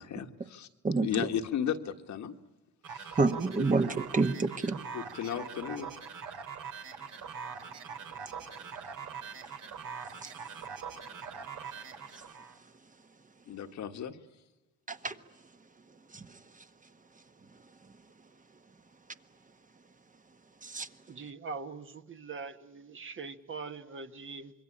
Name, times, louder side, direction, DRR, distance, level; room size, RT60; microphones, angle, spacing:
voice 1, 0.0-2.3 2.9-3.2 3.6-3.7 4.9-5.9 13.5-14.2, left 9 dB, 70° left, 1.7 m, -35 dB
voice 2, 0.8-1.3 3.2-4.8 10.2-10.3 12.1-12.2 14.9-15.2 16.1-16.4 20.6-20.9, right 3 dB, 25° right, 1.3 m, -29 dB
sound 1, 2.8-12.6, right 6 dB, 75° right, 3.3 m, -43 dB
voice 3, 21.1-24.5, right 4 dB, 40° right, 1.6 m, -42 dB
26.5 x 22.5 x 10.0 m
cardioid pair, 90°, 30 cm